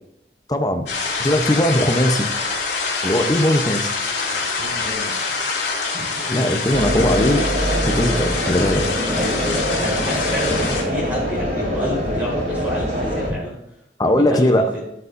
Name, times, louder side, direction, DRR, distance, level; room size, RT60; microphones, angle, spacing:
voice 1, 0.5-0.9 1.2-2.3 3.0-3.9 6.3-7.4 7.8-8.8 14.0-14.7, left 1 dB, 20° left, 6 dB, 0.7 m, -19 dB
sound 1, 0.9-10.8, left 4 dB, 80° left, 2.6 m, -25 dB
voice 2, 4.2-5.1 5.9-6.2 6.5-6.6 8.1-8.3 9.1-13.6 14.0-14.8, equal, 10° right, -7 dB, 3.7 m, -29 dB
sound 2, 6.7-13.3, equal, 50° right, 3.7 m, -23 dB
15.0 x 6.7 x 2.6 m, 0.83 s
head